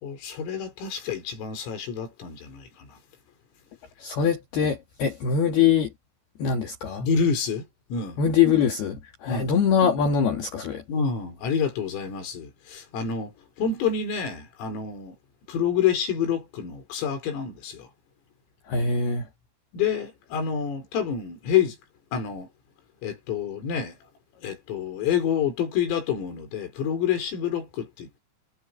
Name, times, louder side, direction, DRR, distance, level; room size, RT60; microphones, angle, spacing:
voice 1, 0.0-3.0 7.0-8.2 9.3-9.5 10.9-13.3 13.6-15.2 15.5-17.9 19.7-21.8 22.1-22.5 23.0-24.0 24.4-28.2, left 7 dB, 80° left, 7.4 m, -28 dB
voice 2, 4.0-5.9 6.4-7.1 8.2-10.8 18.7-19.2, left 7 dB, 55° left, 4.1 m, -23 dB
omnidirectional pair, 5.9 m